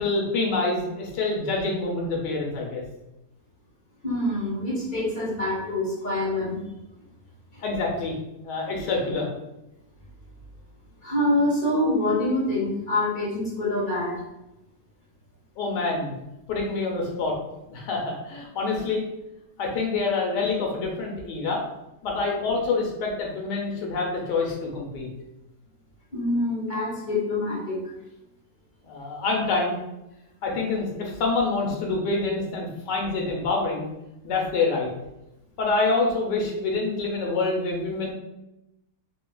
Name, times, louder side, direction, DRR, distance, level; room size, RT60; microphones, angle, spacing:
voice 1, 0.0-2.8 7.6-8.1 8.4-9.3 15.6-16.1 16.5-17.4 17.7-19.0 19.6-21.6 22.0-25.1 28.9-29.8 30.4-33.9 34.2-34.9 35.6-38.1, left 3 dB, 85° left, -1 dB, 1.3 m, -26 dB
voice 2, 4.0-6.6 7.5-7.6 11.0-14.2 26.1-27.8, left 1 dB, 40° left, -6 dB, 0.8 m, -25 dB
3.1 x 2.8 x 2.2 m, 0.92 s
omnidirectional pair, 1.8 m